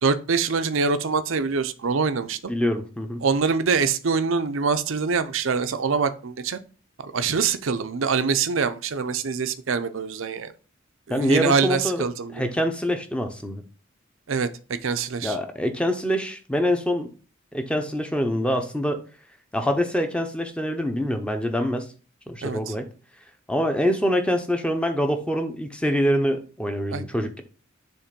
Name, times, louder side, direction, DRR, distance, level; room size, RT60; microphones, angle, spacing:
voice 1, 0.0-2.5 3.2-6.6 7.0-10.5 11.1-12.5 14.3-15.4 22.4-22.7 26.9-27.0, right 5 dB, 70° right, 0.6 m, -24 dB
voice 2, 2.5-3.2 11.1-12.1 12.3-13.6 15.2-17.1 17.5-19.0 19.5-21.9 22.3-22.9 23.5-27.4, equal, 5° left, 0.7 m, -25 dB
7.2 x 3.2 x 5.2 m
head